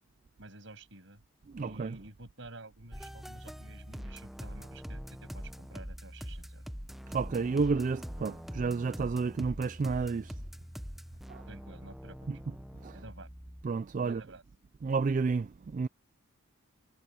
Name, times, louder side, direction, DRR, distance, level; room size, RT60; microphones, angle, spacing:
voice 1, 0.4-1.2 1.6-6.6 11.5-12.3 12.9-13.3 14.0-14.4, right 2 dB, 60° right, 7.2 m, -50 dB
voice 2, 1.5-2.0 7.1-10.4 11.3-11.5 12.3-12.4 12.8-13.0 13.6-14.2 14.8-15.9, right 4 dB, 35° right, 0.3 m, -31 dB
sound 1, 2.9-13.7, equal, ahead, 0.8 m, -44 dB
head